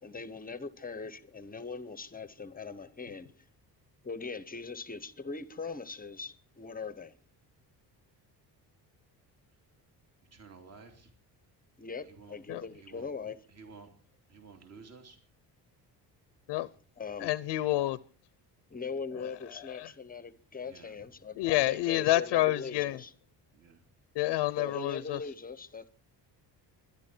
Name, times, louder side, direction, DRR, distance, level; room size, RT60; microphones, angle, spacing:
voice 1, 0.0-3.4 4.0-7.1 11.8-13.4 17.0-17.3 18.7-23.1 24.5-25.9, left 5 dB, 20° left, 0.9 m, -41 dB
voice 2, 10.2-11.1 12.0-12.4 12.7-13.1 13.5-13.9 14.3-15.2 20.6-21.1 23.5-23.8, right 4 dB, 40° right, 2.7 m, -53 dB
voice 3, 17.2-18.0 19.8-19.9 21.4-23.0 24.2-25.2, left 16 dB, 80° left, 0.8 m, -28 dB
24.5 x 11.0 x 4.4 m
cardioid pair, 145°, 41 cm